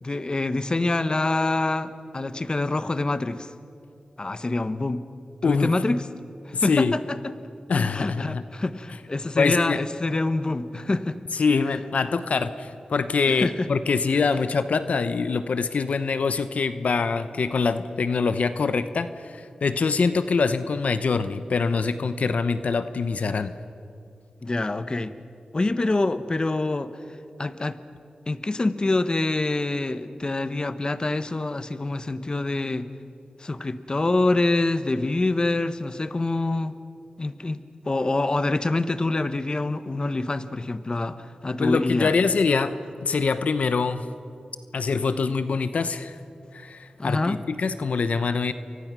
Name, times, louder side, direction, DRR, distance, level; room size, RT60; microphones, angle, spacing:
voice 1, 0.0-3.5 4.2-5.0 5.4-6.0 6.5-7.3 7.9-11.2 13.3-13.7 24.4-25.1 25.5-26.9 27.4-27.8 28.3-32.9 33.4-36.7 37.2-42.1 47.0-47.4, left 2 dB, 35° left, 12 dB, 1.1 m, -26 dB
voice 2, 6.5-7.0 7.7-8.4 9.4-9.8 11.3-23.6 41.6-42.7 43.0-44.1 44.7-46.2 46.5-48.5, left 4 dB, 75° left, 11 dB, 0.9 m, -24 dB
28.5 x 23.5 x 6.2 m, 2.6 s
cardioid pair, 55°, 2 cm